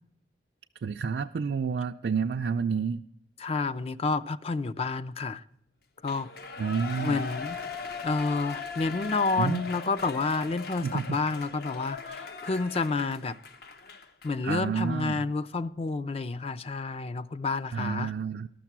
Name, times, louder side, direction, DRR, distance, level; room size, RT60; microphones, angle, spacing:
voice 1, 0.8-3.0 6.6-7.2 9.4-9.6 10.8-11.2 14.4-15.3 17.7-18.5, right 6 dB, 65° right, 0.4 m, -29 dB
voice 2, 3.4-5.4 6.0-6.3 7.0-7.6 8.0-13.3 14.2-18.1, left 3 dB, 35° left, 0.4 m, -29 dB
Shout / Cheering, 6.0-14.4 14.8-14.9, left 5 dB, 60° left, 0.8 m, -39 dB
12.5 x 6.6 x 5.9 m
head